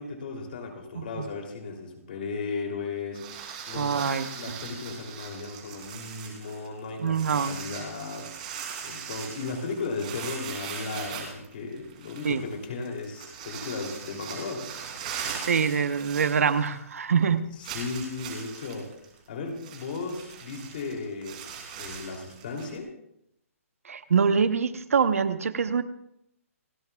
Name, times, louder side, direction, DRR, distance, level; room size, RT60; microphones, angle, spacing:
voice 1, 0.0-8.3 8.8-14.7 17.5-18.9 19.3-21.5 21.8-22.9, left 4 dB, 40° left, 2 dB, 3.1 m, -36 dB
voice 2, 0.9-1.2 3.7-4.3 7.0-7.6 12.2-12.4 15.4-17.4 23.8-25.8, right 6 dB, 70° right, 11 dB, 1.0 m, -24 dB
sound 1, 3.1-16.9 17.2-17.3 17.6-22.8, right 7 dB, 30° right, 3.0 m, -40 dB
29.5 x 11.0 x 2.4 m, 0.77 s
hypercardioid pair, 175°, 8 cm